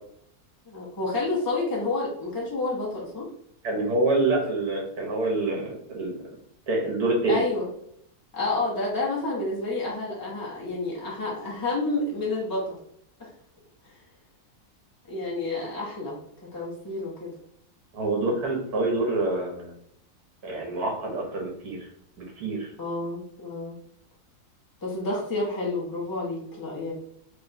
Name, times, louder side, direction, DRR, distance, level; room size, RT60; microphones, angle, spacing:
voice 1, 0.7-3.3 7.3-7.7 8.3-12.8 15.1-16.2 16.5-17.3 22.8-23.8 24.8-26.9, left 2 dB, 25° left, -5 dB, 0.5 m, -29 dB
voice 2, 3.6-6.1 6.7-7.4 17.9-19.7 20.4-21.9 22.2-22.7, right 2 dB, 75° right, -1 dB, 1.5 m, -26 dB
3.3 x 2.2 x 4.0 m, 0.72 s
omnidirectional pair, 1.7 m